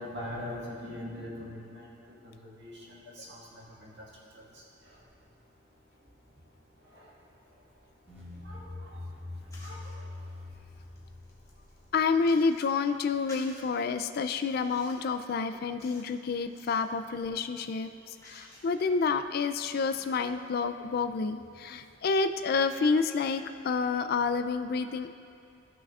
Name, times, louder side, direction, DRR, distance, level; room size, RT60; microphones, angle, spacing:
voice 1, 0.0-4.0 4.3-4.4 6.9-7.1 8.4-9.1 9.6-10.0, left 1 dB, 60° right, -4 dB, 1.7 m, -42 dB
sound 1, 8.1-12.3, left 2 dB, 10° right, 1.8 m, -44 dB
sound 2, 9.5-10.0 10.6-12.8 13.3-13.7 14.2-15.2 15.8-16.1 16.4-16.9 17.5-18.9, left 2 dB, 15° left, 1.1 m, -54 dB
voice 2, 11.9-25.1, left 4 dB, 50° left, 10 dB, 0.3 m, -29 dB
14.5 x 6.0 x 2.4 m, 2.5 s
head